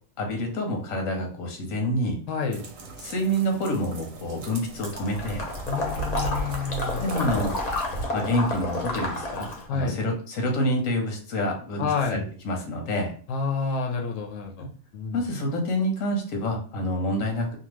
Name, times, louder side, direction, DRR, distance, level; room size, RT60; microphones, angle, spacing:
voice 1, 0.2-2.2 3.0-5.5 7.0-7.5 8.1-13.1 14.6-14.7 15.1-17.6, equal, 90° left, 2 dB, 1.2 m, -27 dB
voice 2, 2.3-2.7 5.7-7.0 9.7-10.0 11.8-12.2 13.3-15.2, left 4 dB, 75° left, 2 dB, 0.9 m, -29 dB
sound 1, 2.5-8.1, right 2 dB, 85° right, 1.0 m, -36 dB
Water / Liquid, 4.8-9.7, left 2 dB, 45° left, 0.6 m, -31 dB
2.8 x 2.2 x 3.1 m, 0.43 s
omnidirectional pair, 1.4 m